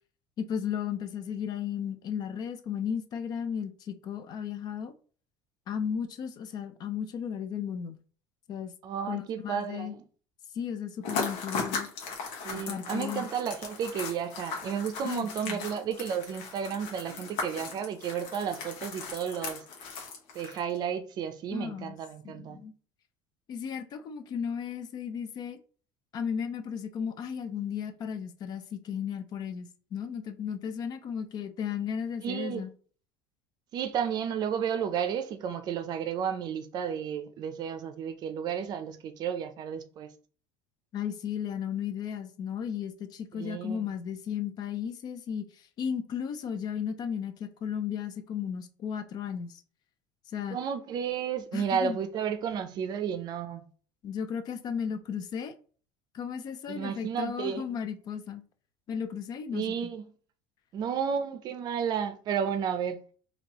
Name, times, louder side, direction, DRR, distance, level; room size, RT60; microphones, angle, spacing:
voice 1, 0.4-4.9 5.7-8.0 8.5-8.7 9.1-10.0 10.5-11.9 12.5-13.3 15.0-15.6 21.5-22.0 22.2-22.7 23.5-25.6 26.1-32.7 40.9-49.6 50.3-50.6 51.5-52.0 54.0-55.5 56.1-58.4 58.9-59.6, left 8 dB, 40° left, 0.5 m, -35 dB
voice 2, 8.8-10.0 12.4-19.6 20.3-22.6 32.2-32.6 33.7-40.1 43.3-43.9 50.5-53.7 56.7-57.6 59.5-60.1 60.7-63.0, right 8 dB, 45° right, 0.5 m, -32 dB
sound 1, 11.0-20.8, left 4 dB, 80° left, 1.2 m, -37 dB
4.3 x 2.8 x 2.9 m
cardioid pair, 135°, 10 cm